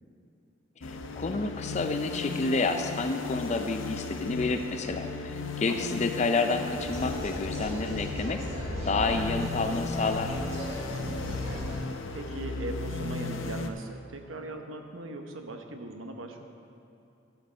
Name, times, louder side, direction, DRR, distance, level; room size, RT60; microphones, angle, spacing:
sound 1, 0.8-13.7, left 3 dB, 75° left, 0.6 m, -35 dB
voice 1, 0.8-8.4 8.9-10.4, left 3 dB, 35° left, 7 dB, 0.4 m, -29 dB
voice 2, 5.7-6.0 10.8-11.4 12.1-16.4, right 2 dB, 90° right, 4 dB, 1.0 m, -40 dB
sound 2, 6.7-11.8, equal, 30° right, 2.0 m, -38 dB
12.0 x 7.5 x 4.4 m, 2.7 s
head